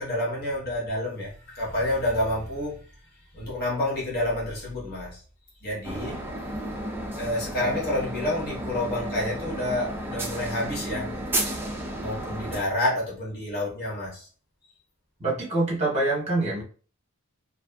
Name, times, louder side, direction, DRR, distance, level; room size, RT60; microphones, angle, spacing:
voice 1, 0.0-2.8 3.3-5.2 5.6-6.2 7.2-11.2 12.0-14.3, left 1 dB, 45° left, -5 dB, 1.0 m, -29 dB
sound 1, 5.8-12.6, right 1 dB, 10° right, 0.3 m, -32 dB
voice 2, 15.2-16.6, right 2 dB, 30° right, -3 dB, 0.8 m, -25 dB
2.5 x 2.4 x 2.2 m, 0.40 s
head